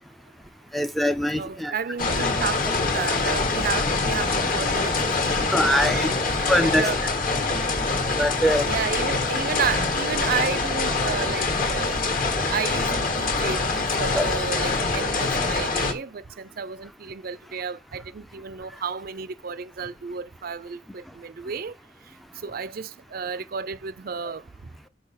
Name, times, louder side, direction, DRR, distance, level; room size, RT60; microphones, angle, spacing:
voice 1, 0.7-1.7 5.5-6.1 6.5-6.9 8.2-8.7 14.1-14.3, equal, ahead, 0.5 m, -22 dB
voice 2, 1.4-7.0 8.6-12.0 12.5-21.7 22.4-24.4, right 6 dB, 55° right, 0.5 m, -32 dB
sound 1, 2.0-15.9, left 3 dB, 50° left, 1.7 m, -24 dB
6.5 x 5.5 x 5.6 m
head